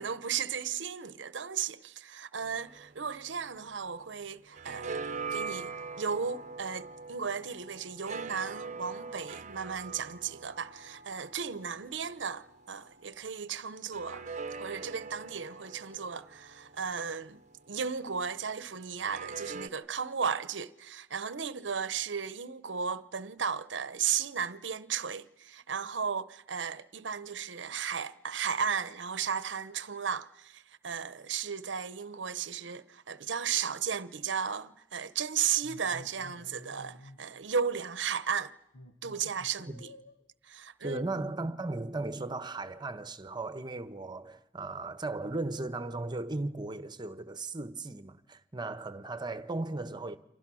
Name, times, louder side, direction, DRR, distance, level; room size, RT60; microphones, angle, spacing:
voice 1, 0.0-14.3 14.6-17.4 17.7-38.5 39.0-39.9 40.4-41.1, right 7 dB, 70° right, 0.9 m, -35 dB
sound 1, 2.4-4.1 4.4-13.1 13.9-18.0 19.0-19.7, right 4 dB, 40° right, 0.9 m, -43 dB
sound 2, 35.6-37.2 37.7-38.0 38.7-40.2 40.9-41.8 42.1-43.0, left 1 dB, 75° left, 1.9 m, -51 dB
voice 2, 40.8-50.2, right 2 dB, 25° right, 1.1 m, -36 dB
29.5 x 25.0 x 6.3 m
head